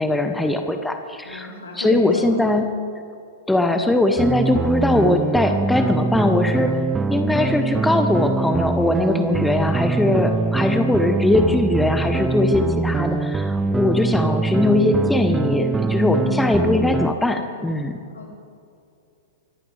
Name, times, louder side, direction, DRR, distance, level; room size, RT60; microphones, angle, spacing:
voice 1, 0.0-2.7 3.5-6.7 7.1-18.0, left 2 dB, 5° left, 6 dB, 1.0 m, -20 dB
voice 2, 1.2-2.6 16.0-16.4 18.1-18.3, left 3 dB, 75° left, -1 dB, 3.9 m, -32 dB
sound 1, 4.2-17.1, right 3 dB, 10° right, 0.5 m, -23 dB
24.0 x 15.0 x 3.4 m, 2.5 s
figure-of-eight pair, 105°, 0 cm